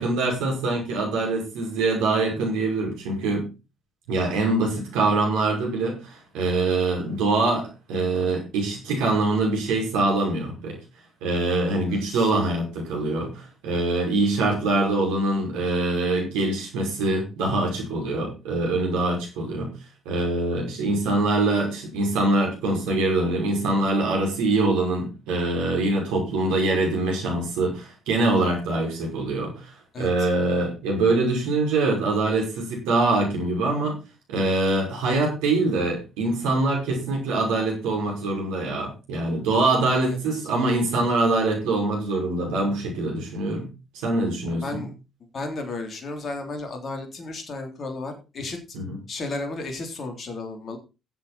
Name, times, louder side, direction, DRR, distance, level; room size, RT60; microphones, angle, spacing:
voice 1, 0.0-3.5 4.1-10.8 11.2-19.7 20.1-34.0 34.3-44.9 48.7-49.0, right 2 dB, 70° right, 0 dB, 5.7 m, -24 dB
voice 2, 11.9-12.3 29.9-30.3 40.0-40.2 44.5-44.9 45.3-48.6 49.1-50.8, left 2 dB, 45° left, 4 dB, 3.5 m, -33 dB
16.0 x 8.1 x 4.3 m, 0.29 s
figure-of-eight pair, 45°, 0 cm